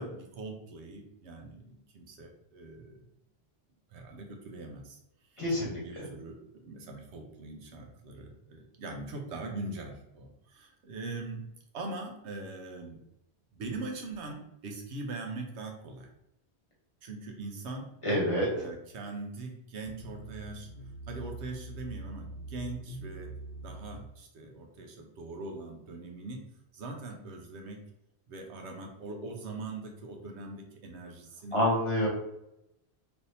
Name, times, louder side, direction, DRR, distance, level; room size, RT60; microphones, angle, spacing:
voice 1, 0.0-3.0 3.9-5.0 5.3-5.4 5.8-11.5 11.7-13.0 13.5-16.1 17.0-18.2 18.5-20.7 21.1-23.3 23.6-26.4 26.7-27.8 28.3-31.7, right 2 dB, 85° right, 2 dB, 1.0 m, -42 dB
voice 2, 5.4-5.8 18.0-18.7 31.5-32.1, equal, 30° left, -4 dB, 0.9 m, -27 dB
sound 1, 19.8-24.1, right 2 dB, 80° left, 0.9 m, -43 dB
3.4 x 2.7 x 2.6 m, 0.83 s
omnidirectional pair, 1.1 m